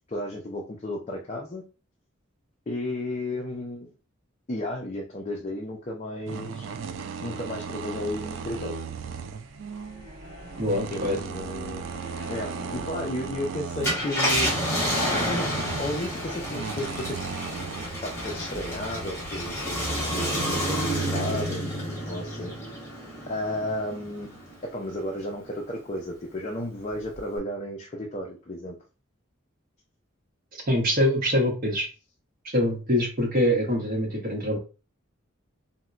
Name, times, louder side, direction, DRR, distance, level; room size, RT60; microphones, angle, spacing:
voice 1, 0.1-1.6 2.7-3.9 4.5-6.6 7.2-8.8 10.9-11.9 12.3-14.7 15.3-17.3 18.0-22.8 23.3-24.4 24.7-28.8, left 1 dB, 35° left, -1 dB, 0.5 m, -33 dB
sound 1, 6.3-17.9, right 6 dB, 70° right, 0.3 m, -37 dB
sound 2, 7.9-24.4, left 1 dB, 10° right, 1.5 m, -47 dB
voice 2, 10.6-11.2 30.5-31.9 32.5-34.6, equal, 45° right, -1 dB, 0.8 m, -24 dB
Car, 13.7-24.5 25.0-25.1 27.1-27.4, equal, 15° left, 1.0 m, -29 dB
4.0 x 2.1 x 2.3 m, 0.33 s
head